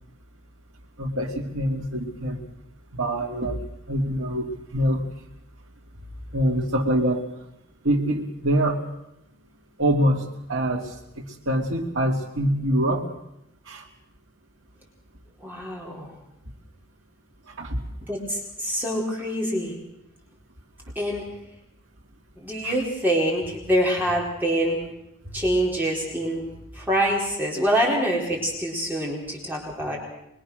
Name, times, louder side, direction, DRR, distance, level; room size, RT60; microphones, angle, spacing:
voice 1, 1.0-2.4 2.9-3.6 3.9-5.0 6.3-7.2 7.8-8.8 9.8-13.1 13.7-13.9 17.6-17.8 22.6-22.8, right 1 dB, 75° right, -4 dB, 2.5 m, -25 dB
voice 2, 15.4-16.1 18.1-19.8 21.0-21.2 22.4-24.8 25.3-26.4 26.7-30.0, equal, 10° right, -3 dB, 4.2 m, -25 dB
24.5 x 23.0 x 6.4 m, 0.83 s
head